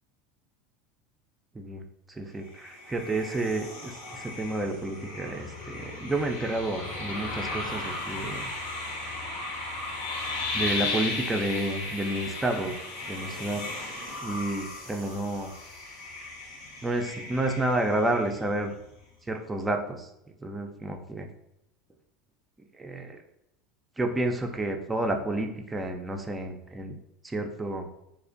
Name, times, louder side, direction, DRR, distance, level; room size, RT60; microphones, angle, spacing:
voice 1, 2.1-8.4 10.5-12.8 13.1-13.8 14.2-15.5 16.8-18.7 19.3-20.1 20.4-21.3 22.8-23.2 24.0-27.0 27.2-27.9, right 2 dB, 15° right, 4 dB, 0.3 m, -30 dB
sound 1, 2.4-18.7, left 2 dB, 85° left, 0.6 m, -36 dB
2.4 x 2.0 x 2.5 m, 0.81 s
hypercardioid pair, 85°, 0 cm